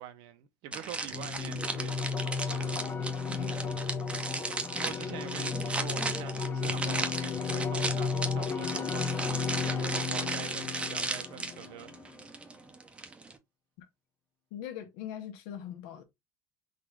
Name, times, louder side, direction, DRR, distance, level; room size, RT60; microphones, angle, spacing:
voice 1, 0.0-2.8 4.4-12.0, right 10 dB, 75° right, 0.8 m, -45 dB
sound 1, 0.7-13.4, right 3 dB, 15° right, 0.6 m, -36 dB
sound 2, 1.1-12.1, left 5 dB, 25° left, 0.5 m, -34 dB
voice 2, 3.2-3.6 13.8-13.9 14.5-16.0, left 10 dB, 85° left, 1.1 m, -41 dB
3.9 x 2.6 x 4.5 m
cardioid pair, 145°, 8 cm